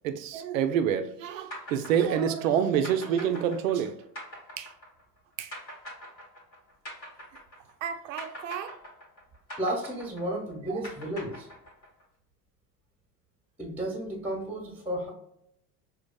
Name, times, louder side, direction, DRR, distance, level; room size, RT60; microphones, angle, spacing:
voice 1, 0.0-4.0 4.6-4.7 5.4-5.5 7.8-8.8 10.7-10.8, right 8 dB, 50° right, 9 dB, 0.5 m, -28 dB
sound 1, 1.5-7.9 8.2-12.0, equal, 90° left, 1.2 m, -43 dB
voice 2, 9.6-11.5 13.6-15.1, right 1 dB, 5° right, -1 dB, 1.0 m, -33 dB
5.0 x 2.4 x 2.2 m, 0.76 s
figure-of-eight pair, 80°, 50 cm